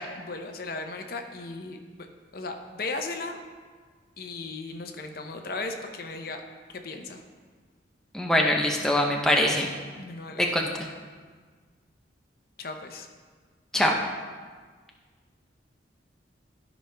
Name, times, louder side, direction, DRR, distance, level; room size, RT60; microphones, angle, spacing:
voice 1, 0.2-1.8 2.3-3.4 4.2-6.4 6.8-7.2 10.0-10.5 12.6-13.1, left 3 dB, 55° left, 5 dB, 0.7 m, -36 dB
voice 2, 8.1-9.7 10.4-10.7 13.7-14.0, left 1 dB, 5° left, -1 dB, 0.7 m, -23 dB
13.5 x 5.2 x 3.4 m, 1.5 s
head